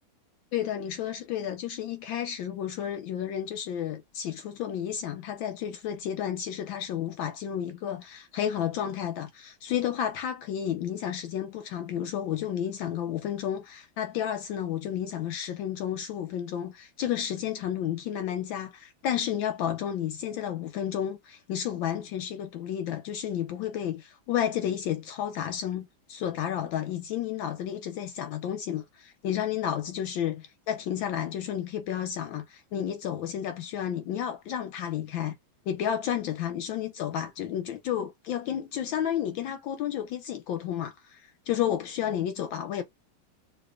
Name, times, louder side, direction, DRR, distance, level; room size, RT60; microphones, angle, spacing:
voice 1, 0.5-35.4 35.7-42.8, left 10 dB, 75° left, 1.3 m, -31 dB
3.3 x 3.0 x 2.4 m
omnidirectional pair, 2.3 m